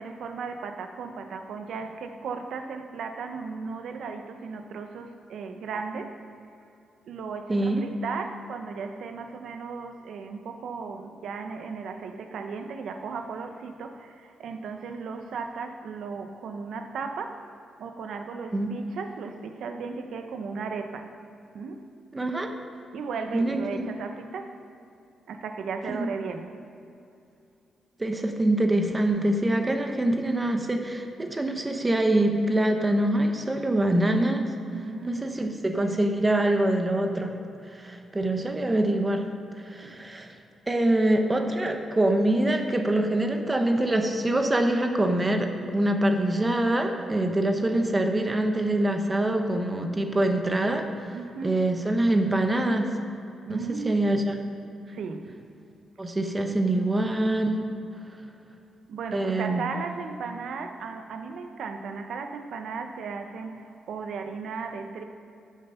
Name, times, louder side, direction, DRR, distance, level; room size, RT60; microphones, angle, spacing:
voice 1, 0.0-6.2 7.0-17.4 17.8-21.1 21.5-21.8 22.9-24.6 25.3-26.5 34.7-35.6 39.8-40.0 51.1-51.6 53.5-54.1 54.9-55.3 58.9-65.0, right 5 dB, 70° right, 6 dB, 0.9 m, -36 dB
voice 2, 7.5-7.8 18.5-18.7 22.1-22.5 23.3-23.9 25.9-26.1 28.0-34.4 35.0-37.3 37.7-39.3 39.6-40.3 40.7-51.1 51.4-53.0 53.5-54.3 56.0-57.6 59.1-59.6, right 1 dB, 15° right, 5 dB, 0.8 m, -25 dB
13.0 x 7.4 x 5.6 m, 2.7 s
cardioid pair, 135°, 0 cm